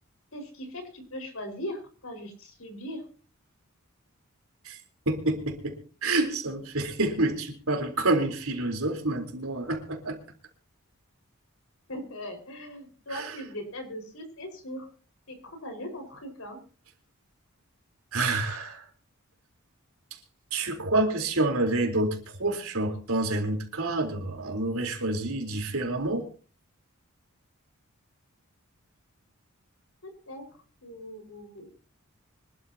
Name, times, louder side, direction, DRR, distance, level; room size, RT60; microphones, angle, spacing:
voice 1, 0.3-3.0 11.9-14.9 15.3-16.6 30.0-30.4 30.8-31.7, equal, 70° left, 5 dB, 5.0 m, -39 dB
voice 2, 5.1-5.8 6.0-10.2 13.1-13.3 18.1-18.8 20.5-26.3, right 2 dB, 75° right, 3 dB, 3.8 m, -28 dB
25.0 x 12.5 x 2.9 m, 0.38 s
head